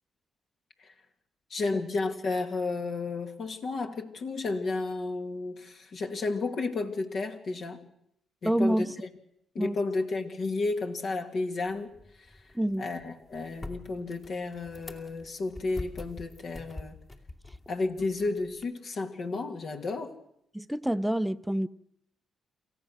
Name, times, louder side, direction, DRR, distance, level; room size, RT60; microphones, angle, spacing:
voice 1, 1.5-7.8 8.4-8.9 9.5-11.9 12.2-12.4 12.8-17.0 17.7-20.1, left 3 dB, 60° left, 2.3 m, -32 dB
voice 2, 8.4-8.9 9.6-9.8 12.5-12.9 20.5-21.7, right 1 dB, ahead, 0.7 m, -27 dB
sound 1, 11.6-18.6, left 2 dB, 35° left, 2.5 m, -46 dB
27.5 x 14.5 x 6.4 m
supercardioid pair, 60°, 0 cm